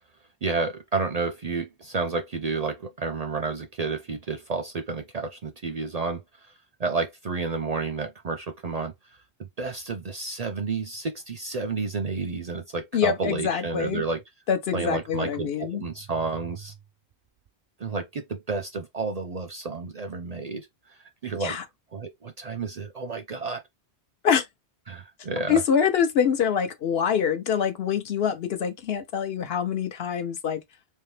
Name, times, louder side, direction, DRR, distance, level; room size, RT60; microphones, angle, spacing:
voice 1, 0.4-6.5 6.8-8.9 9.6-14.2 14.7-16.7 17.8-21.0 21.2-21.6 21.9-23.6 24.9-25.6, right 4 dB, 50° right, 0.5 m, -31 dB
voice 2, 12.9-14.0 14.5-15.8 21.4-21.6 24.2-24.5 25.5-30.6, left 7 dB, 70° left, 0.9 m, -25 dB
3.6 x 2.8 x 3.2 m
omnidirectional pair, 1.1 m